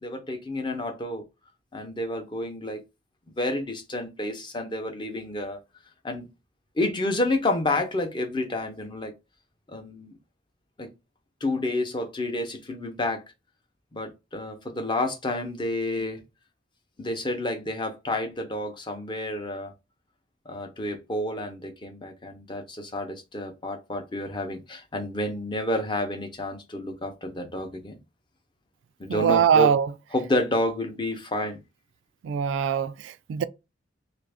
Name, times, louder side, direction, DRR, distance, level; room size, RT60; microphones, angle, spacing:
voice 1, 0.0-1.2 1.7-2.8 3.4-5.6 6.0-6.3 6.8-9.1 9.7-10.1 10.8-10.9 11.4-13.2 13.9-16.2 17.0-19.7 20.5-28.0 29.0-29.7 30.1-31.6, left 1 dB, 25° left, 0.6 m, -29 dB
voice 2, 29.1-29.9 32.2-33.4, right 7 dB, 85° right, 0.3 m, -22 dB
3.3 x 2.5 x 3.4 m
head